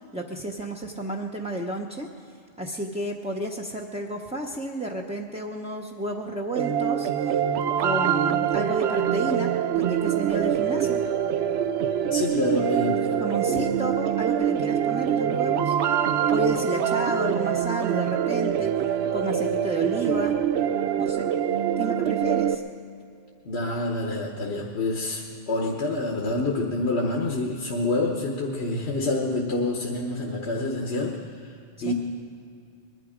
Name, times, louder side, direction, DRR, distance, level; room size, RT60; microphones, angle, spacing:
voice 1, 0.1-2.1 2.6-7.4 7.8-9.5 9.7-11.0 13.2-15.7 16.3-18.7 19.1-20.4 21.0-21.3 21.8-22.6 31.8-31.9, right 1 dB, 5° right, -1 dB, 0.6 m, -31 dB
sound 1, 6.6-22.6, right 9 dB, 80° right, 0.9 m, -24 dB
voice 2, 12.1-13.7 23.4-31.9, left 2 dB, 85° left, -1 dB, 1.4 m, -27 dB
21.0 x 11.5 x 5.0 m, 2.5 s
omnidirectional pair, 1.1 m